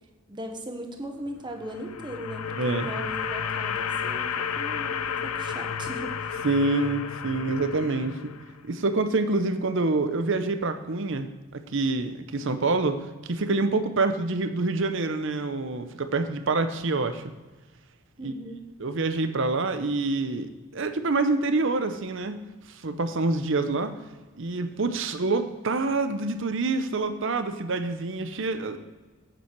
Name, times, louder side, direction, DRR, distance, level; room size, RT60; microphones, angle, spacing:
voice 1, 0.3-6.4 18.2-18.6, equal, 20° right, 3 dB, 1.0 m, -38 dB
sound 1, 1.5-8.6, left 7 dB, 85° left, 0.6 m, -32 dB
voice 2, 2.6-2.9 6.4-8.2 8.6-11.3 11.5-17.2 18.2-18.3 18.8-22.4 22.7-24.0 24.3-28.8, right 3 dB, 60° right, 9 dB, 0.7 m, -26 dB
9.1 x 7.3 x 4.6 m, 1.2 s
head